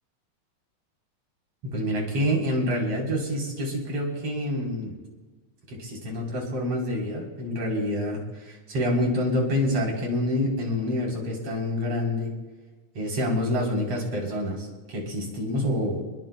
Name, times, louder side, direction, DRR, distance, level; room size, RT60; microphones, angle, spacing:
voice 1, 1.6-4.9 5.7-12.3 12.9-16.0, left 1 dB, 50° right, -2 dB, 4.8 m, -27 dB
27.5 x 21.0 x 2.3 m, 1.3 s
omnidirectional pair, 3.5 m